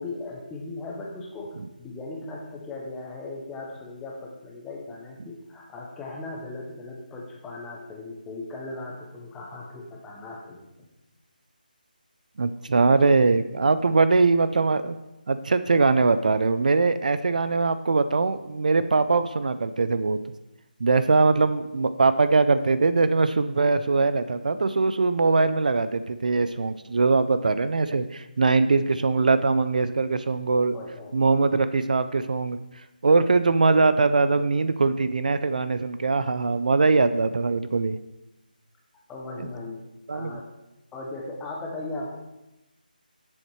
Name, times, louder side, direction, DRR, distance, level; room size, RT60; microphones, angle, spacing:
voice 1, 0.0-10.9 30.7-31.1 39.1-39.8 40.1-40.4 40.9-42.2, left 2 dB, 5° left, -1 dB, 0.5 m, -38 dB
voice 2, 12.4-15.0 15.3-20.2 20.8-30.8 31.1-32.6 33.0-38.0 39.4-39.5 40.1-40.4, right 3 dB, 55° right, 12 dB, 0.4 m, -22 dB
7.8 x 7.1 x 3.1 m, 0.95 s
figure-of-eight pair, 170°, 5 cm